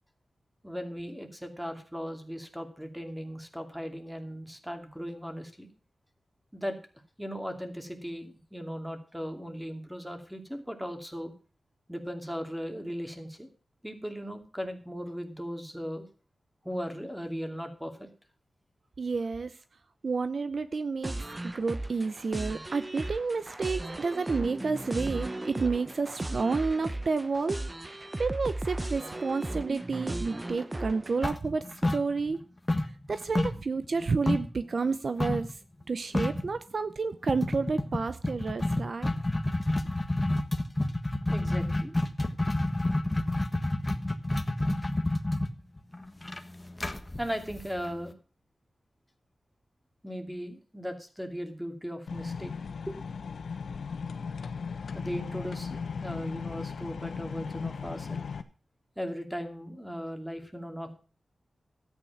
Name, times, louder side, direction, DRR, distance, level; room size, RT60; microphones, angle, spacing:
voice 1, 0.6-5.7 6.5-6.8 7.2-11.3 11.9-13.5 13.8-16.0 16.6-18.1 41.3-41.9 47.2-48.1 50.0-52.5 52.9-53.0 54.9-58.2 59.0-60.9, equal, 5° right, 6 dB, 2.5 m, -37 dB
voice 2, 19.0-19.6 20.0-21.2 21.5-27.6 28.2-32.4 33.1-35.6 35.9-39.1, right 4 dB, 60° right, 12 dB, 0.7 m, -30 dB
sound 1, 21.0-31.4, right 1 dB, 20° right, 0.8 m, -36 dB
sound 2, 31.2-32.4 32.7-34.6 35.2-35.5 35.8-35.9 36.1-36.5 37.3-48.1, left 1 dB, 20° left, 1.4 m, -29 dB
sound 3, 52.1-58.4, left 5 dB, 85° left, 1.1 m, -37 dB
13.0 x 9.0 x 5.8 m, 0.38 s
wide cardioid pair, 85°, 0 cm